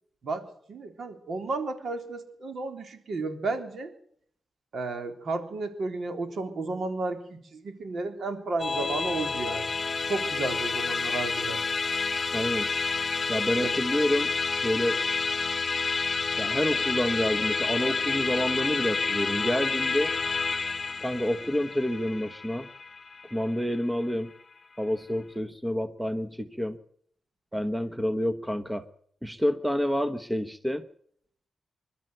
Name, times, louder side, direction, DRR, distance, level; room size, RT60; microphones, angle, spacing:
voice 1, 0.2-3.9 4.7-9.7 10.1-11.6 13.6-13.8, right 3 dB, 65° right, 6 dB, 3.5 m, -33 dB
Musical instrument, 8.6-24.1, left 4 dB, 35° left, 1.1 m, -29 dB
voice 2, 12.3-12.7 13.3-14.3 14.6-15.0 16.4-20.1 21.0-22.7 23.3-24.3 24.8-26.8 27.5-28.9 29.2-30.9, equal, 5° right, 10 dB, 1.1 m, -28 dB
26.0 x 12.5 x 8.0 m, 0.65 s
wide cardioid pair, 100°, 0 cm